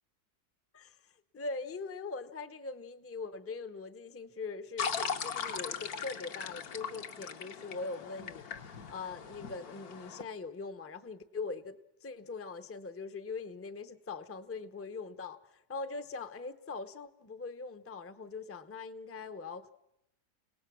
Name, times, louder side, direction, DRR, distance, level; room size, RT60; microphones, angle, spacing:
voice 1, 1.3-8.6 8.9-19.7, left 4 dB, 15° left, 11 dB, 0.4 m, -42 dB
sound 1, 4.8-10.2, left 6 dB, 75° left, 1.6 m, -39 dB
29.5 x 18.5 x 6.1 m, 0.81 s
omnidirectional pair, 1.7 m